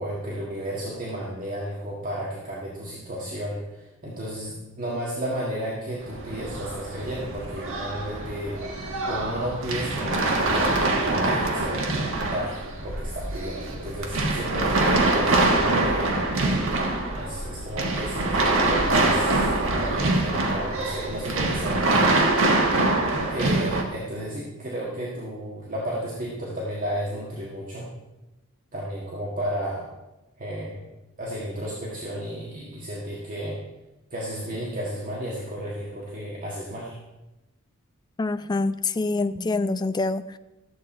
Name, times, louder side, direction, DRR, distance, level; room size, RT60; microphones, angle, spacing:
voice 1, 0.0-8.6 9.0-16.4 17.1-22.2 23.3-27.9 28.7-29.9 30.4-30.8 31.2-33.6 34.1-37.0, equal, 40° right, -5 dB, 1.7 m, -33 dB
sound 1, 6.0-23.8, right 2 dB, 65° right, 1.5 m, -24 dB
voice 2, 38.2-40.4, left 3 dB, 20° left, 12 dB, 0.3 m, -26 dB
13.0 x 7.9 x 4.3 m, 1.0 s
head